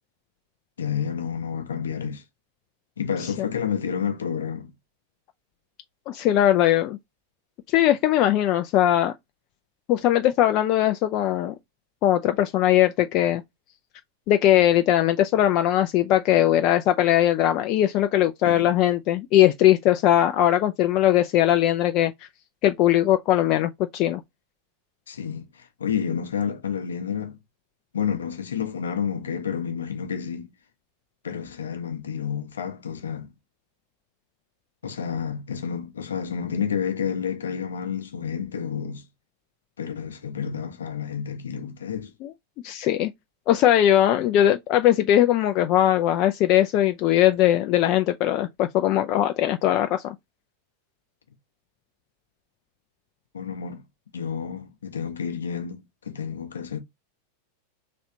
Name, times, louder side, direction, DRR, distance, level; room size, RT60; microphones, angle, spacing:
voice 1, 0.8-2.2 3.0-4.7 18.4-18.7 25.1-27.4 27.9-30.5 31.2-33.3 34.8-39.0 39.8-42.1 53.3-53.8 54.1-56.8, left 7 dB, 70° left, 0.7 m, -30 dB
voice 2, 6.1-7.0 7.7-9.1 9.9-11.5 12.0-13.4 14.3-22.1 22.6-24.2 42.2-42.3 42.6-43.1 43.5-50.1, left 12 dB, 40° left, 0.3 m, -20 dB
4.1 x 3.2 x 2.7 m
figure-of-eight pair, 90°, 0 cm